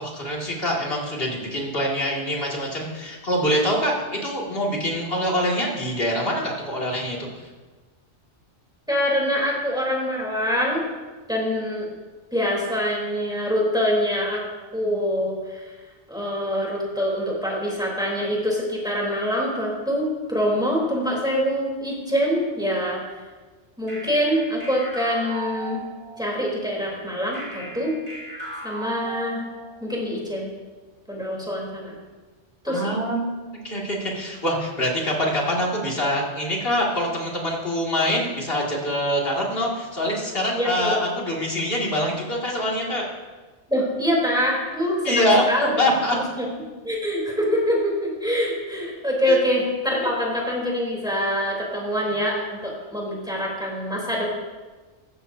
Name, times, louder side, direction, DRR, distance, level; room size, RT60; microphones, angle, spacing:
voice 1, 0.0-7.3 32.7-33.3 33.6-43.1 45.0-45.4 45.8-46.2 49.3-49.4 50.0-50.1, equal, 55° left, -3 dB, 2.7 m, -24 dB
voice 2, 8.9-10.8 11.3-11.9 12.3-14.4 14.7-15.7 16.1-23.0 23.8-25.8 26.2-27.9 28.6-29.4 29.8-30.5 31.1-32.0 32.6-32.9 40.5-41.1 43.7-45.8 46.1-46.5 46.8-54.3, equal, 5° right, -4 dB, 3.5 m, -25 dB
sound 1, 23.9-26.4 27.3-29.8, right 2 dB, 65° right, 3.9 m, -36 dB
15.5 x 12.5 x 2.8 m, 1.3 s
omnidirectional pair, 1.2 m